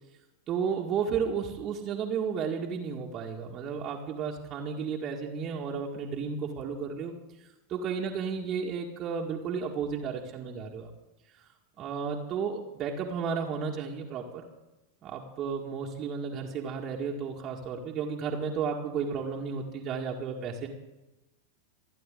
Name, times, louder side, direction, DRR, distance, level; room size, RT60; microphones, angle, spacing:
voice 1, 0.5-7.1 7.7-10.9 11.4-11.5 11.8-14.4 15.0-20.7, right 6 dB, 30° right, -1 dB, 1.9 m, -33 dB
28.0 x 10.5 x 3.9 m, 1.0 s
figure-of-eight pair, 90°, 0 cm